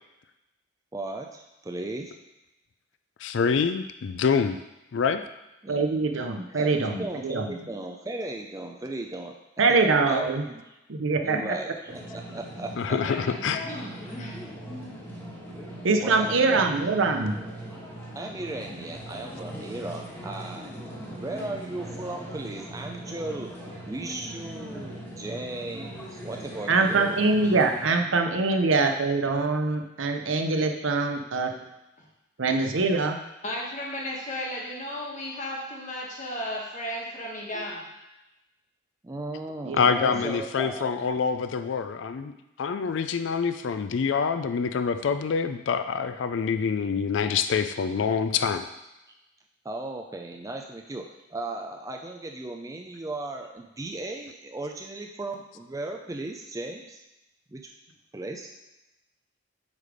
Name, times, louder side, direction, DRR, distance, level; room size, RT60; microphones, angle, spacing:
voice 1, 0.9-2.1 5.6-5.9 6.5-9.3 9.7-9.8 10.1-10.6 11.2-11.7 12.1-13.0 16.0-16.6 18.2-23.5 23.9-27.2 39.0-40.9 49.6-57.0 57.5-57.7 58.1-58.5, right 2 dB, 15° right, 2 dB, 0.4 m, -36 dB
voice 2, 3.2-4.6 4.9-5.2 11.3-11.5 12.8-13.6 39.7-48.7, left 6 dB, 65° left, 9 dB, 0.4 m, -26 dB
voice 3, 5.7-7.5 9.6-10.4 10.9-11.4 15.8-17.4 26.7-31.5 32.4-33.2 37.5-37.6 39.6-39.8, right 3 dB, 75° right, 4 dB, 0.7 m, -24 dB
sound 1, 11.9-27.9, right 1 dB, 10° left, 1.3 m, -40 dB
voice 4, 13.0-14.4 31.6-31.7 32.0-32.1 33.4-37.8, left 1 dB, 35° left, -2 dB, 1.3 m, -35 dB
8.3 x 3.4 x 5.0 m, 0.97 s
head